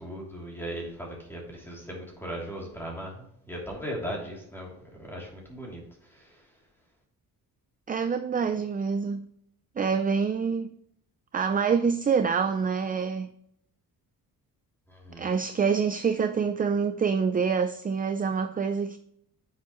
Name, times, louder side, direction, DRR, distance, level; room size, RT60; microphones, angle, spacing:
voice 1, 0.0-6.4 14.9-15.3, equal, 5° left, 3.0 m, -38 dB
voice 2, 7.9-9.2 9.8-10.7 11.3-13.3 15.2-19.0, right 6 dB, 25° right, 0.4 m, -26 dB
9.4 x 7.1 x 3.1 m
cardioid pair, 140°, 38 cm